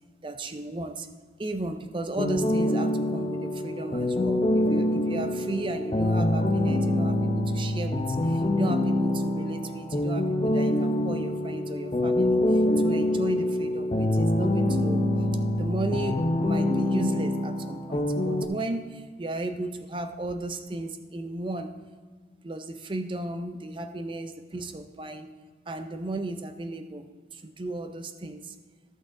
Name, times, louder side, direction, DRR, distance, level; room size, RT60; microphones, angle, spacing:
voice 1, 0.2-1.1 1.4-15.3 15.6-21.7 22.4-25.3 25.7-28.6, right 2 dB, 30° right, 8 dB, 0.5 m, -35 dB
sound 1, 2.2-18.5, left 1 dB, 30° left, 0.6 m, -25 dB
14.0 x 6.1 x 3.7 m, 1.5 s
head